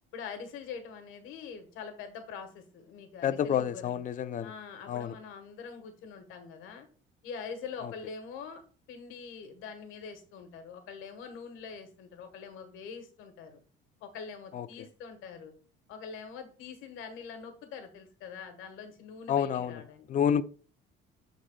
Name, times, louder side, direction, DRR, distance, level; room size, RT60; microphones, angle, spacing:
voice 1, 0.1-4.0 4.4-6.9 7.2-8.6 8.9-13.6 14.0-15.5 15.9-20.1, left 6 dB, 80° left, 1.4 m, -44 dB
voice 2, 3.2-4.5 4.9-5.1 7.8-7.9 14.5-14.7 19.3-19.8 20.1-20.4, left 8 dB, 40° left, 0.4 m, -29 dB
11.0 x 3.9 x 2.3 m
cardioid pair, 115°, 20 cm